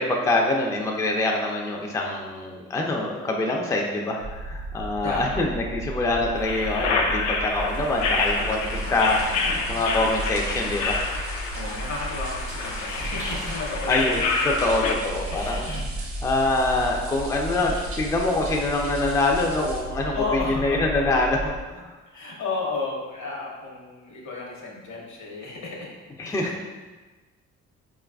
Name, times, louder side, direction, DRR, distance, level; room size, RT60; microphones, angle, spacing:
voice 1, 0.0-8.6 8.9-9.2 9.4-11.1 13.9-14.2 14.6-15.7 16.2-21.9 26.2-26.6, left 2 dB, 10° left, 0 dB, 0.3 m, -25 dB
sound 1, 4.2-21.6, right 1 dB, 85° right, 0.5 m, -34 dB
voice 2, 5.0-5.5 8.4-9.8 11.5-14.2 15.3-15.9 17.6-17.8 20.1-21.1 22.1-25.9 26.2-26.6, left 3 dB, 70° left, -2 dB, 0.9 m, -33 dB
sound 2, 6.3-14.9, left 4 dB, 85° left, 0.5 m, -28 dB
sound 3, 7.5-19.8, right 3 dB, 45° right, 0.7 m, -42 dB
4.5 x 2.4 x 2.2 m, 1.3 s
cardioid pair, 90°, 30 cm